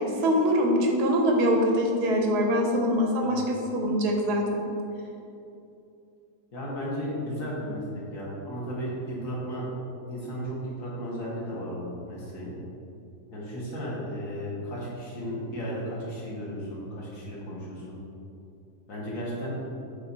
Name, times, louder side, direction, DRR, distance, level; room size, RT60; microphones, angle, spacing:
voice 1, 0.0-4.6, equal, 80° right, 1 dB, 1.4 m, -24 dB
voice 2, 6.5-9.7 10.1-12.5 13.3-18.0 18.9-19.5, equal, 55° left, -7 dB, 1.8 m, -34 dB
7.4 x 3.5 x 4.0 m, 2.7 s
omnidirectional pair, 1.7 m